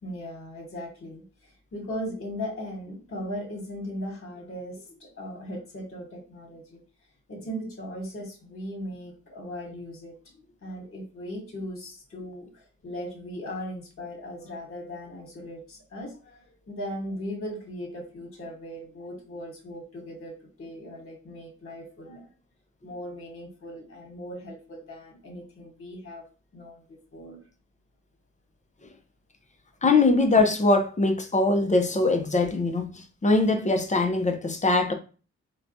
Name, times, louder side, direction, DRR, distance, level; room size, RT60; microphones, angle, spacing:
voice 1, 0.0-6.8 7.3-10.1 10.6-22.3 22.8-26.2 26.5-27.4, equal, 50° left, 1.4 m, -38 dB
voice 2, 29.8-34.9, left 3 dB, 25° left, 0.6 m, -22 dB
4.0 x 2.3 x 2.6 m
cardioid pair, 65°, 29 cm